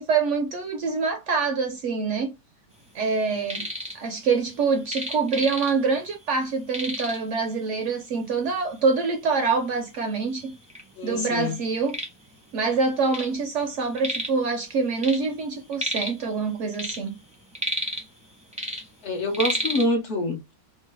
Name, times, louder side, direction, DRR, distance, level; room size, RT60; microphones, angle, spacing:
voice 1, 0.0-2.3 2.9-3.7 3.9-10.6 11.0-12.0 12.5-17.1, right 4 dB, 65° right, 0.8 m, -25 dB
sound 1, 3.2-4.0 4.3-6.0 6.3-6.4 6.7-7.3 8.1-8.2 8.8-8.9 9.6-9.7 10.0-10.8 11.3-13.4 13.6-14.4 14.7-16.3 16.6-18.2 18.5-19.9, equal, 10° right, 0.5 m, -31 dB
voice 2, 11.0-11.6 19.0-20.6, left 1 dB, 60° left, 0.9 m, -26 dB
3.0 x 2.2 x 3.2 m
omnidirectional pair, 1.6 m